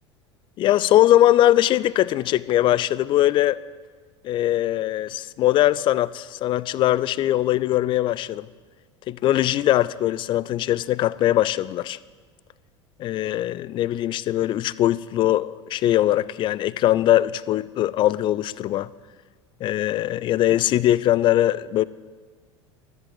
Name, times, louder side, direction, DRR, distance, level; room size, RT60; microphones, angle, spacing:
voice 1, 0.6-3.6 4.2-8.5 9.1-12.0 13.0-18.9 19.6-21.8, left 13 dB, 30° left, 0.4 m, -21 dB
13.5 x 10.5 x 8.8 m
figure-of-eight pair, 75°, 15 cm